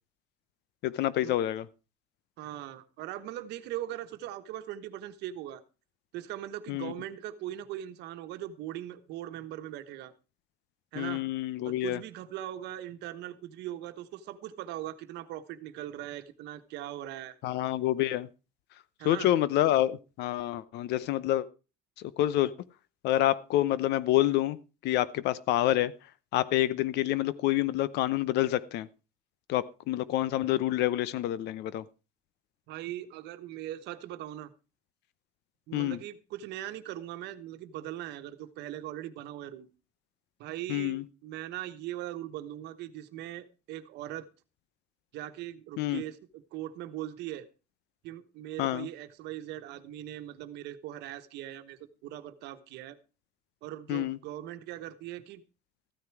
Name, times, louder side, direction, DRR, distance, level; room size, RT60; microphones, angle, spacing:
voice 1, 0.8-1.7 6.7-6.9 10.9-12.0 17.4-18.3 19.0-21.5 22.0-22.5 23.0-25.9 26.3-28.9 29.5-31.9 35.7-36.0 40.7-41.0 45.8-46.0 48.6-48.9 53.9-54.2, left 14 dB, 85° left, 18 dB, 0.8 m, -27 dB
voice 2, 2.4-5.6 6.1-10.1 10.9-11.2 11.6-17.4 19.0-19.3 32.7-34.5 35.7-39.7 40.4-44.3 45.1-47.5 48.0-53.0 53.6-55.4, right 13 dB, 85° right, 10 dB, 1.2 m, -40 dB
14.0 x 9.7 x 4.6 m, 0.32 s
cardioid pair, 110°, 17 cm